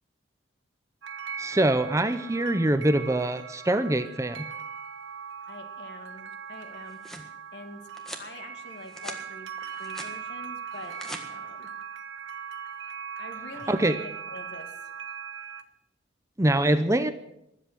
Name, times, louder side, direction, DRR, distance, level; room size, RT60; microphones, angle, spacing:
sound 1, 1.0-15.6, right 7 dB, 90° right, 1.5 m, -40 dB
voice 1, 1.4-4.5 13.7-13.9 16.4-17.1, right 1 dB, 15° right, 11 dB, 0.6 m, -24 dB
voice 2, 5.5-7.9 8.2-9.5 9.8-11.7 13.2-14.0 14.3-14.7, left 1 dB, 60° left, 6 dB, 2.2 m, -45 dB
sound 2, 6.6-7.3 8.0-8.3 8.8-9.2 9.6-10.1 10.7-11.2, equal, ahead, 1.6 m, -41 dB
20.5 x 8.2 x 7.6 m, 0.82 s
head